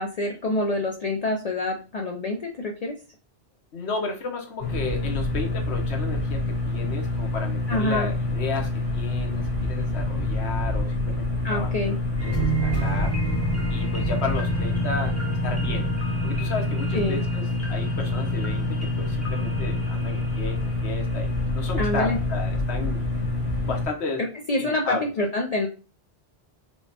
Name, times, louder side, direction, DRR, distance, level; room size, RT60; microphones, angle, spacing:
voice 1, 0.0-3.0 7.7-8.1 11.4-11.9 16.9-17.2 21.8-22.2 24.5-25.7, left 2 dB, 55° left, 2 dB, 0.4 m, -26 dB
voice 2, 3.7-12.0 12.2-13.2 13.7-15.1 15.4-15.9 16.2-23.1 23.6-24.2 24.6-25.1, left 4 dB, 85° left, 2 dB, 1.1 m, -33 dB
sound 1, 4.6-23.9, left 2 dB, 40° left, 1.4 m, -27 dB
sound 2, 12.2-21.5 21.9-22.0, right 2 dB, 15° left, 0.7 m, -31 dB
4.5 x 2.1 x 2.8 m, 0.35 s
omnidirectional pair, 1.1 m